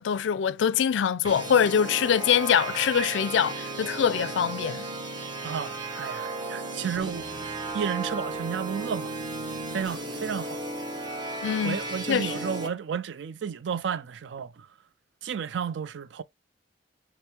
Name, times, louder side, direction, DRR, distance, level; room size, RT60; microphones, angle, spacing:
voice 1, 0.0-4.8 11.4-11.8 12.1-12.4, left 8 dB, 80° left, 0.4 m, -24 dB
sound 1, 1.2-12.7, right 2 dB, 25° right, 0.9 m, -35 dB
voice 2, 5.4-9.2 9.7-10.6 11.6-14.7 15.2-16.2, right 7 dB, 70° right, 0.4 m, -32 dB
3.6 x 3.1 x 4.3 m
head